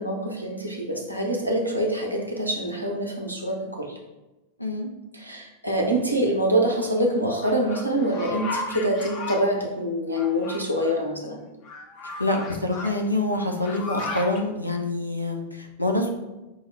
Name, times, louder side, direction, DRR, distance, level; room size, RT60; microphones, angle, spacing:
voice 1, 0.0-4.0 5.1-11.4, right 1 dB, 90° right, 0 dB, 0.7 m, -25 dB
sound 1, 7.4-9.4 10.1-11.0 11.6-12.9 13.3-14.4, left 2 dB, 40° left, 0.6 m, -35 dB
voice 2, 12.0-16.1, left 2 dB, 85° left, 2 dB, 0.6 m, -26 dB
5.4 x 2.1 x 4.3 m, 1.0 s
figure-of-eight pair, 90°, 0 cm